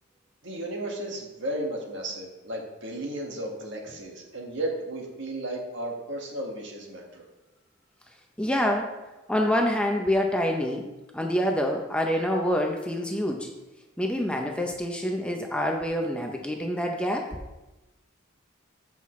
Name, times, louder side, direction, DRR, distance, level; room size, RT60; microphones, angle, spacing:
voice 1, 0.4-7.2, right 1 dB, 60° right, 0 dB, 1.7 m, -34 dB
voice 2, 8.4-8.9 9.3-10.9 11.1-13.5 14.0-17.3, equal, 5° left, 2 dB, 0.6 m, -26 dB
14.0 x 5.8 x 3.2 m, 1.1 s
head